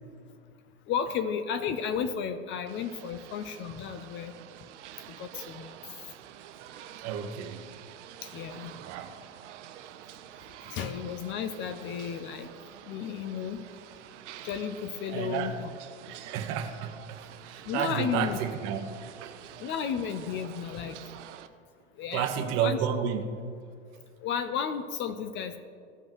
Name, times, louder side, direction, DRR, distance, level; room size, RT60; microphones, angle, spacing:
voice 1, 0.9-4.3 5.0-5.8 6.1-6.2 8.2-8.7 10.6-12.5 12.8-13.8 14.4-15.5 16.1-16.2 17.6-18.4 19.6-21.1 21.9-22.3 22.6-23.0 24.2-25.6, left 7 dB, 30° left, 10 dB, 0.5 m, -33 dB
sound 1, 2.7-21.5, right 11 dB, 75° right, 0.7 m, -48 dB
voice 2, 7.0-7.7 8.8-9.2 15.1-15.6 16.1-19.3 22.1-23.4, right 8 dB, 45° right, 6 dB, 1.1 m, -32 dB
16.0 x 5.3 x 3.0 m, 2.3 s
hypercardioid pair, 110°, 36 cm